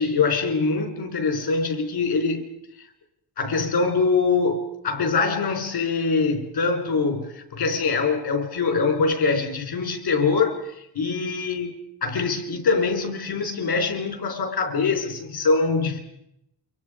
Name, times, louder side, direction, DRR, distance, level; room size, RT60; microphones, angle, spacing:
voice 1, 0.0-2.5 3.4-11.7 12.0-16.0, left 4 dB, 80° left, 4.3 m, -23 dB
29.0 x 25.0 x 5.0 m
wide cardioid pair, 110°, 38 cm